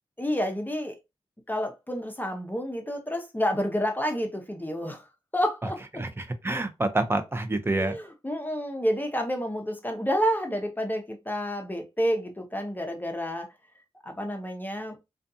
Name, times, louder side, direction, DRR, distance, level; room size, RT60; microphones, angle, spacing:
voice 1, 0.2-1.0 1.5-5.1 5.3-6.0 7.8-13.5 14.0-15.0, equal, 15° left, 0.7 m, -29 dB
voice 2, 5.9-8.0, right 2 dB, 20° right, 0.7 m, -27 dB
2.5 x 2.3 x 2.6 m
supercardioid pair, 40°, 12 cm